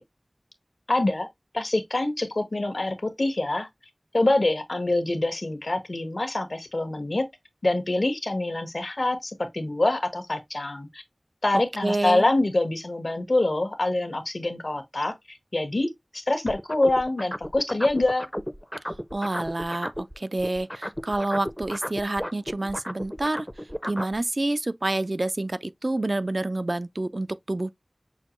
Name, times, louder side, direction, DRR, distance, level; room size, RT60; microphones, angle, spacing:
voice 1, 0.9-1.3 1.5-3.7 4.1-7.3 7.6-11.0 11.4-18.3, left 2 dB, 85° left, 1.2 m, -25 dB
voice 2, 11.8-12.3 19.1-23.5 23.9-27.7, right 2 dB, 65° right, 0.4 m, -28 dB
sound 1, 16.5-20.1 20.4-24.2, equal, 5° left, 0.5 m, -33 dB
6.4 x 2.3 x 3.0 m
wide cardioid pair, 45°, 0 cm